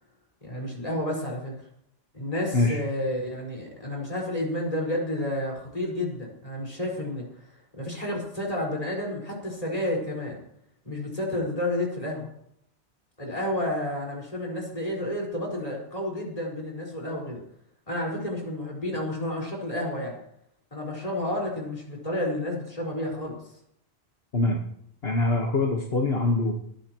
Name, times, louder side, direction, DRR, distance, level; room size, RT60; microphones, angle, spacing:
voice 1, 0.4-1.5 2.1-7.2 7.8-10.4 10.9-12.3 13.2-17.4 17.9-20.2 20.7-23.4, left 1 dB, 35° left, -2 dB, 5.4 m, -30 dB
voice 2, 25.0-26.5, left 2 dB, 65° left, 0 dB, 1.8 m, -24 dB
20.5 x 15.0 x 3.1 m, 0.73 s
omnidirectional pair, 1.1 m